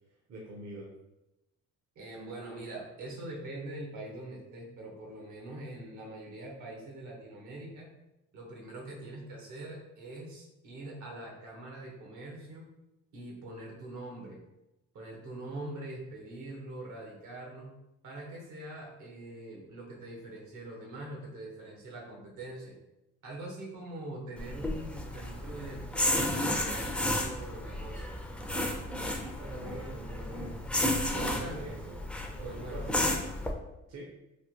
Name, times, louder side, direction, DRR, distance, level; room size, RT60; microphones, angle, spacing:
voice 1, 0.3-0.9 29.4-30.6 31.1-32.0 32.4-32.8 33.9-34.0, right 2 dB, 60° right, -2 dB, 0.7 m, -43 dB
voice 2, 1.9-7.9 8.3-12.7 13.1-14.4 14.9-17.7 18.0-22.7 23.2-26.2 26.5-28.2 31.2-31.7 32.4-33.2, right 2 dB, 75° right, -1 dB, 1.0 m, -43 dB
sound 1, 24.4-33.5, left 1 dB, 5° left, 0.4 m, -32 dB
3.3 x 2.1 x 2.8 m, 0.92 s
cardioid pair, 90°, 30 cm